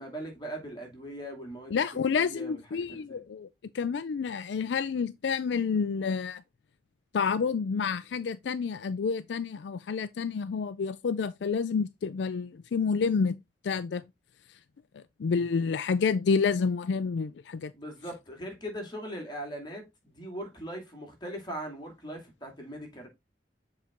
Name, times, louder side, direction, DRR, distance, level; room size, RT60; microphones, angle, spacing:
voice 1, 0.0-3.2 17.7-23.1, right 1 dB, 25° left, 2.5 m, -40 dB
voice 2, 1.7-3.5 3.7-6.4 7.1-13.4 13.6-14.0 15.0-17.7, left 5 dB, 75° left, 0.4 m, -29 dB
7.2 x 4.3 x 3.6 m
head